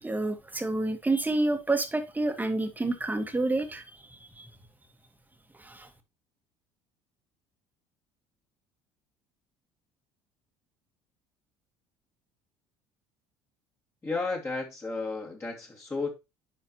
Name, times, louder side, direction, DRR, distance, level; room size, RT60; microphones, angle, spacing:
voice 1, 0.0-4.5 5.6-5.9, right 2 dB, 15° right, 1.8 m, -29 dB
voice 2, 14.0-16.2, left 3 dB, 20° left, 2.4 m, -33 dB
10.5 x 4.7 x 3.0 m
supercardioid pair, 75°, 12 cm